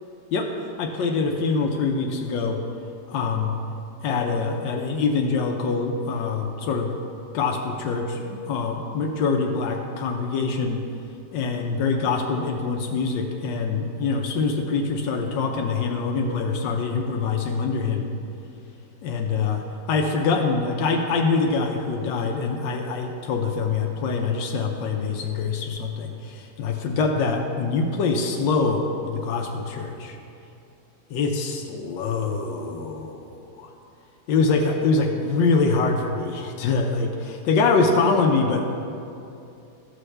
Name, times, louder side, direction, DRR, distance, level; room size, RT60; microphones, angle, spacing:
voice 1, 0.8-2.6 3.1-3.6 4.0-6.9 7.3-10.8 11.3-18.1 19.0-30.2 31.1-33.2 34.3-38.6, left 4 dB, 90° left, 2 dB, 1.4 m, -24 dB
13.5 x 6.3 x 3.3 m, 2.7 s
omnidirectional pair, 1.9 m